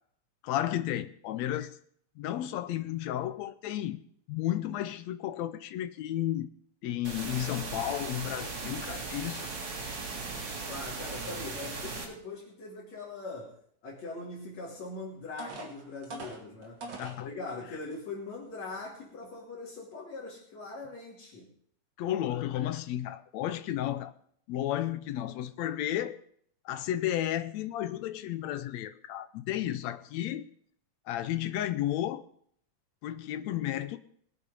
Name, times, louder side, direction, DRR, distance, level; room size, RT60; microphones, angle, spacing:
voice 1, 0.4-1.8 2.2-4.0 4.3-6.5 6.8-9.5 17.0-17.3 22.0-24.1 24.5-26.2 26.6-30.4 31.1-32.2 33.0-34.0, left 12 dB, 75° left, 1.7 m, -33 dB
sound 1, 7.0-12.0, right 3 dB, 55° right, 4.1 m, -38 dB
voice 2, 10.5-13.6 13.8-16.9 17.2-21.5, left 3 dB, 55° left, 4.1 m, -41 dB
sound 2, 14.8-14.9 15.4-17.2 17.9-18.0 18.5-18.7, right 2 dB, 35° right, 2.7 m, -42 dB
21.0 x 8.5 x 5.4 m
omnidirectional pair, 3.8 m